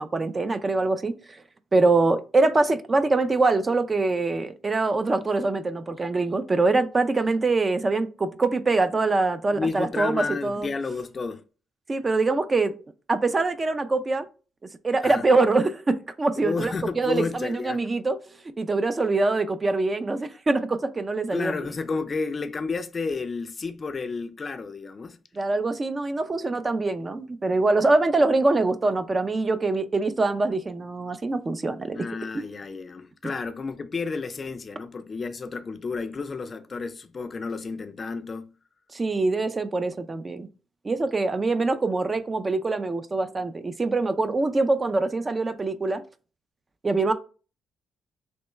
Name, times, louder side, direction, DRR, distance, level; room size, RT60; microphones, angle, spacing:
voice 1, 0.0-1.4 1.7-10.7 11.9-12.7 13.1-14.3 14.8-21.6 25.3-32.0 32.3-32.4 38.9-40.5 40.8-46.0 46.8-47.1, right 3 dB, 30° right, 0.4 m, -24 dB
voice 2, 9.5-11.4 15.0-15.3 16.4-17.8 21.3-25.2 31.9-38.6, left 4 dB, 35° left, 0.4 m, -31 dB
3.3 x 3.1 x 3.1 m
cardioid pair, 90°, 0 cm